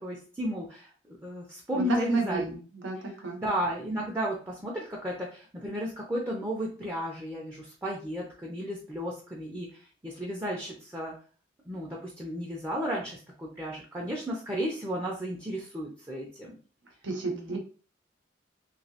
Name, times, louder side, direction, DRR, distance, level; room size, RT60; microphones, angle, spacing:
voice 1, 0.0-2.5 3.4-9.7 10.0-11.2 11.7-16.5 17.3-17.6, equal, 15° right, -3 dB, 0.5 m, -34 dB
voice 2, 1.7-3.4 17.0-17.6, right 3 dB, 85° right, 2 dB, 0.8 m, -31 dB
3.0 x 2.8 x 2.8 m, 0.39 s
head